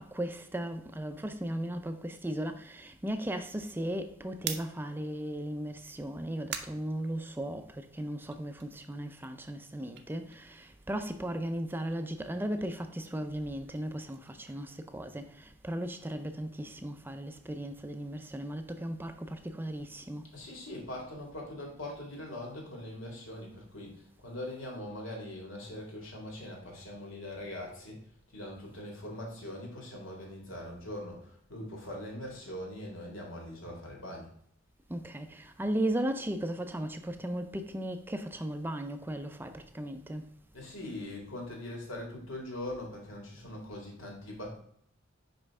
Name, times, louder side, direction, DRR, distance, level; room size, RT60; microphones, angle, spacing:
voice 1, 0.0-20.3 34.9-40.3, right 1 dB, 10° right, 0.5 m, -36 dB
sound 1, 4.4-7.8 8.2-11.1 11.4-15.5, right 8 dB, 55° right, 0.6 m, -47 dB
voice 2, 20.3-28.0 28.3-34.3 40.5-44.6, left 1 dB, 85° left, 2.2 m, -42 dB
5.4 x 5.2 x 3.6 m
head